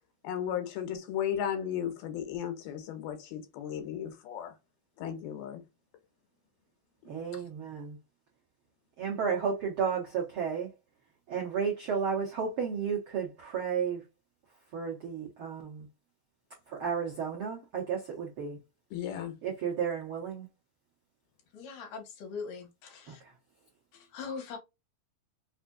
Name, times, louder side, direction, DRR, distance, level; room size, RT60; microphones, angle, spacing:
voice 1, 0.2-4.5 5.0-5.6 18.9-19.4, left 9 dB, 90° left, 2.8 m, -35 dB
voice 2, 7.0-8.0 9.0-10.7 11.3-14.0 14.7-15.9 16.7-18.6 19.4-20.5 23.1-23.3, right 6 dB, 85° right, 1.1 m, -33 dB
voice 3, 21.5-23.2 23.9-24.6, left 5 dB, 65° left, 2.9 m, -41 dB
5.8 x 2.7 x 2.3 m
omnidirectional pair, 4.2 m